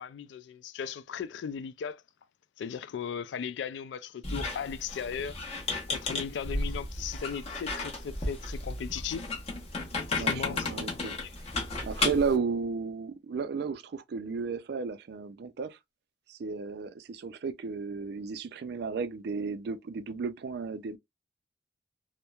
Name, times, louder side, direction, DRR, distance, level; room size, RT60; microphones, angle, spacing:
voice 1, 0.0-2.0 2.6-5.4 5.9-9.3 10.0-10.8 11.2-11.3, left 7 dB, 75° left, 0.3 m, -37 dB
Squeak, 4.2-12.4, left 3 dB, 35° left, 0.9 m, -34 dB
voice 2, 10.2-11.2 11.8-15.8 16.3-21.0, right 5 dB, 65° right, 0.4 m, -33 dB
2.9 x 2.1 x 2.2 m
head